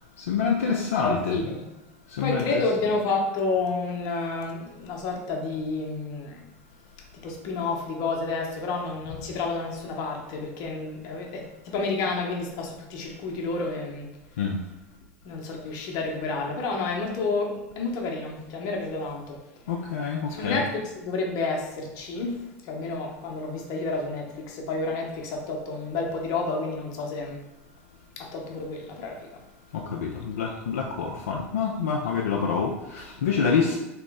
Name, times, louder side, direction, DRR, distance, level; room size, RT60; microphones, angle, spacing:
voice 1, 0.3-1.4 2.2-2.6 14.4-14.6 19.7-20.6 29.7-33.8, left 6 dB, 80° left, -1 dB, 0.4 m, -27 dB
voice 2, 0.9-1.6 2.2-6.4 7.2-14.1 15.2-19.4 20.3-27.4 28.2-29.3, left 3 dB, 55° left, 0 dB, 0.9 m, -30 dB
3.0 x 3.0 x 3.6 m, 0.99 s
hypercardioid pair, 85°, 7 cm